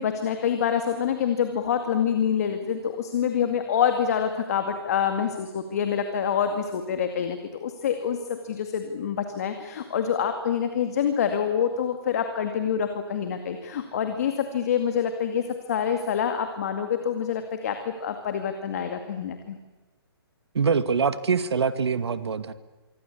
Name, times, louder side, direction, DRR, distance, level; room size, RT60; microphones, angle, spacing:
voice 1, 0.0-15.4 15.7-19.6, left 8 dB, 35° left, 7 dB, 2.2 m, -26 dB
voice 2, 20.5-22.5, right 5 dB, 80° right, 12 dB, 2.1 m, -24 dB
27.0 x 24.0 x 8.5 m, 1.2 s
hypercardioid pair, 175°, 14 cm